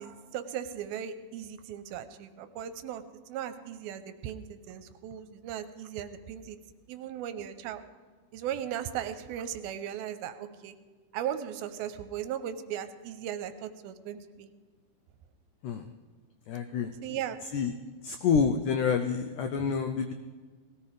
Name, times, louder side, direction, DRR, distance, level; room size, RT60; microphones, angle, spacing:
voice 1, 0.0-3.0 3.3-6.6 6.9-7.8 8.3-10.8 11.1-14.5 17.0-17.4, right 10 dB, 90° right, 10 dB, 2.5 m, -37 dB
voice 2, 16.5-17.2 17.5-17.7 18.0-20.1, left 6 dB, 90° left, 7 dB, 1.7 m, -28 dB
20.0 x 17.0 x 3.3 m, 1.5 s
omnidirectional pair, 4.4 m